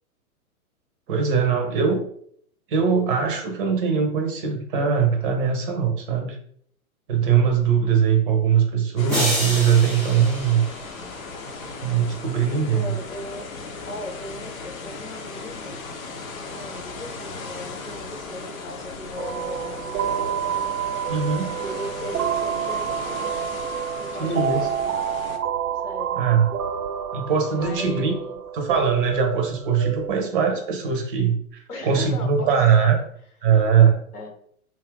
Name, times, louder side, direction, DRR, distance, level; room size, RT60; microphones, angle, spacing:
voice 1, 1.1-2.0 2.7-6.4 7.1-10.6 11.8-12.9 21.1-21.6 24.2-24.6 26.2-26.5 27.1-28.1 28.5-33.0 33.4-34.0, right 7 dB, 40° right, 4 dB, 0.7 m, -21 dB
sound 1, 9.0-25.4, left 4 dB, 65° left, 0.7 m, -37 dB
sound 2, 9.1-11.4, equal, ahead, 0.3 m, -28 dB
voice 2, 12.7-13.5 13.8-15.8 16.5-20.7 21.6-23.3 24.0-25.0 25.8-26.2 27.6-28.4 31.7-32.7 34.1-34.3, left 1 dB, 85° left, 2 dB, 1.0 m, -37 dB
sound 3, 19.2-30.2, right 8 dB, 75° right, 0.5 m, -28 dB
2.6 x 2.4 x 3.3 m, 0.63 s
figure-of-eight pair, 105°, 44 cm